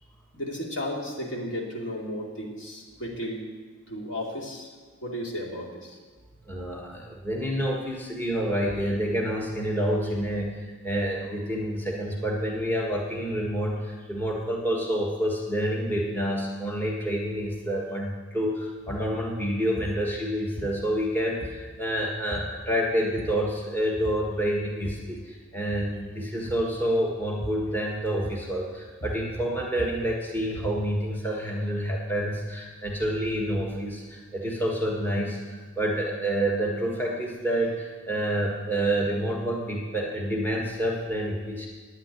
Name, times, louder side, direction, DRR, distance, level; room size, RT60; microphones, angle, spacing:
voice 1, 0.3-3.4 3.9-4.7 5.0-6.0, equal, 65° left, -1 dB, 2.6 m, -34 dB
voice 2, 6.5-41.7, equal, 10° left, -3 dB, 1.5 m, -28 dB
sound 1, 18.8-19.1 19.8-20.1 20.6-21.1 21.4-21.9 22.3-22.6 23.0-23.5 24.0-24.3 24.6-25.2 25.6-26.0 26.5-26.8 27.4-27.8 28.2-28.6 28.9-30.9, right 1 dB, 30° left, 1.2 m, -39 dB
9.8 x 9.2 x 9.8 m, 1.4 s
head